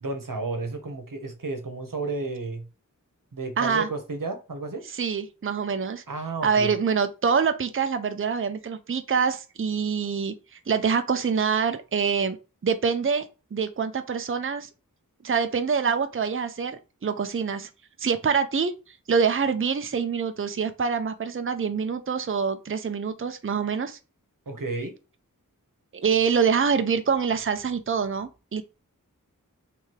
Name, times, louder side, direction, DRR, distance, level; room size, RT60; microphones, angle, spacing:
voice 1, 0.0-2.7 3.3-4.8 6.1-6.7 24.5-24.9, right 3 dB, 75° right, 1.1 m, -32 dB
voice 2, 3.6-3.9 4.9-6.0 6.4-12.4 12.6-13.3 13.5-14.7 15.2-17.7 18.0-18.7 19.1-24.0 25.9-28.6, right 6 dB, 40° right, 0.5 m, -25 dB
3.4 x 3.3 x 4.6 m
wide cardioid pair, 45°, 33 cm